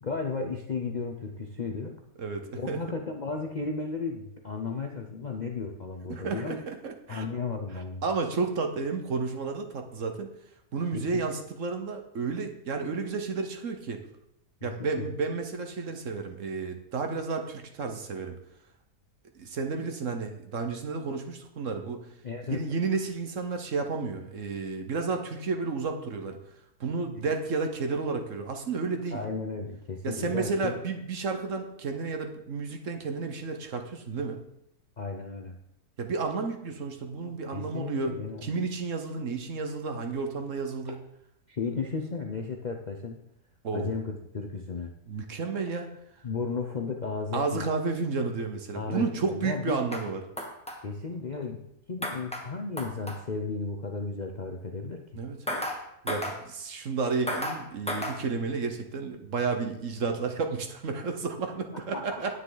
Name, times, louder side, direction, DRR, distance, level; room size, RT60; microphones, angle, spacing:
voice 1, 0.0-2.0 2.6-6.6 7.1-8.0 10.9-11.3 14.6-15.1 22.2-22.7 29.1-30.8 35.0-35.6 37.5-38.4 41.5-43.2 43.7-44.9 46.2-47.7 48.7-49.8 50.8-55.2 61.7-62.4, left 4 dB, 45° left, 2 dB, 0.6 m, -34 dB
voice 2, 2.2-2.8 6.1-7.2 8.0-10.3 10.7-14.0 14.6-18.4 19.3-22.0 22.5-26.4 26.8-29.2 30.0-34.4 36.0-41.0 43.6-44.0 45.1-45.9 47.3-50.2 55.2-55.4 56.0-62.4, right 4 dB, 55° right, 5 dB, 1.3 m, -32 dB
sound 1, 49.7-50.0 50.4-50.8 52.0-52.4 52.8-53.2 55.5-55.8 56.1-56.4 57.3-57.6 57.9-58.2, equal, 5° left, 1.3 m, -32 dB
9.9 x 9.3 x 4.0 m, 0.77 s
omnidirectional pair, 1.7 m